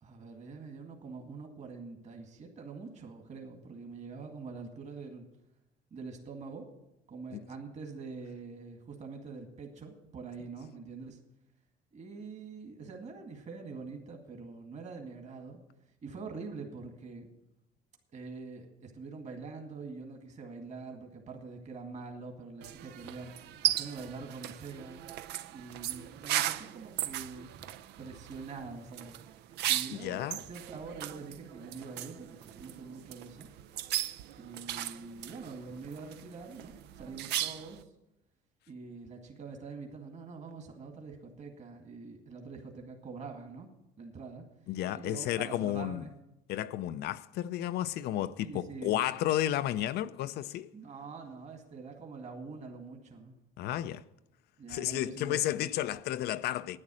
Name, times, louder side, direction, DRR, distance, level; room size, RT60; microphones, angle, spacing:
voice 1, 0.0-5.3 5.9-6.7 7.1-11.2 11.9-15.6 16.0-17.3 18.1-23.3 23.6-27.7 28.0-29.2 29.7-33.5 34.4-37.9 38.7-43.7 44.0-44.4 44.9-46.1 48.4-49.1 50.7-53.4 54.6-55.6, right 4 dB, 45° right, 2.0 m, -45 dB
sound 1, 22.6-37.8, right 13 dB, 80° right, 0.5 m, -37 dB
voice 2, 29.9-30.4 44.7-46.0 46.5-50.7 53.6-54.0 54.7-56.8, left 13 dB, 75° left, 0.5 m, -32 dB
11.0 x 9.7 x 6.2 m
cardioid pair, 110°, 17 cm